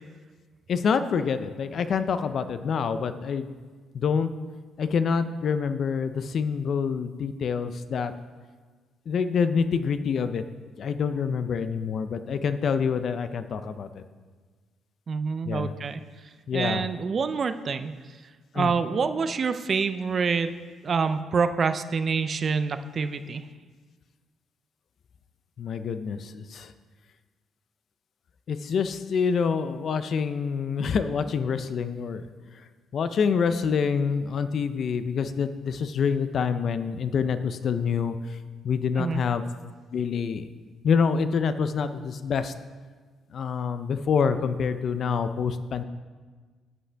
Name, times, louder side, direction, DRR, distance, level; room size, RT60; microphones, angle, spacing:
voice 1, 0.7-3.5 3.9-4.3 4.8-8.1 9.1-10.4 10.8-14.0 15.5-15.7 16.5-16.9 18.5-18.7 25.6-26.7 28.5-32.2 32.9-38.4 38.6-39.4 39.9-40.5 40.8-42.5 43.3-45.8, left 6 dB, 45° left, 11 dB, 0.4 m, -26 dB
voice 2, 15.1-16.0 16.5-17.9 18.5-20.5 20.8-23.4 39.0-39.2, right 5 dB, 30° right, 11 dB, 0.4 m, -26 dB
11.0 x 7.9 x 3.4 m, 1.5 s
cardioid pair, 170°, 0 cm